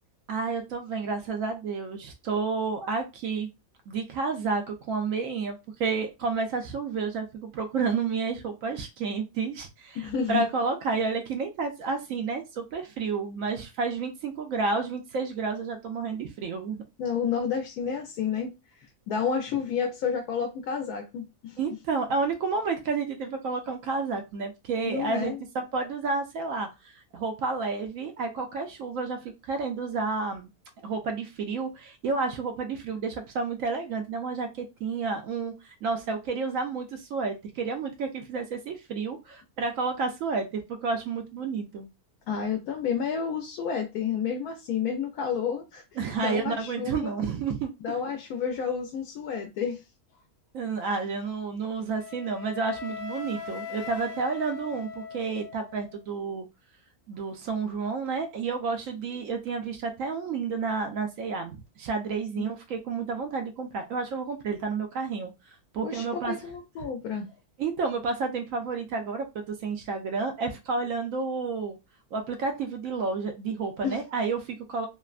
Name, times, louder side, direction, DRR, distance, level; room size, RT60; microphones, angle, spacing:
voice 1, 0.3-3.5 3.9-16.8 21.6-25.3 25.7-30.5 30.8-41.9 46.0-47.7 50.5-56.5 57.1-66.3 67.6-71.8 72.1-74.9, right 4 dB, 70° right, 0.9 m, -30 dB
voice 2, 10.0-10.5 17.0-18.5 19.1-21.6 24.8-25.4 42.3-45.8 46.2-47.2 47.8-49.8 62.4-62.5 65.8-67.3 73.8-74.0, left 7 dB, 80° left, 1.1 m, -30 dB
Wind instrument woodwind instrument, 51.9-56.0, left 7 dB, 60° left, 0.7 m, -40 dB
3.3 x 2.1 x 2.3 m
omnidirectional pair, 1.6 m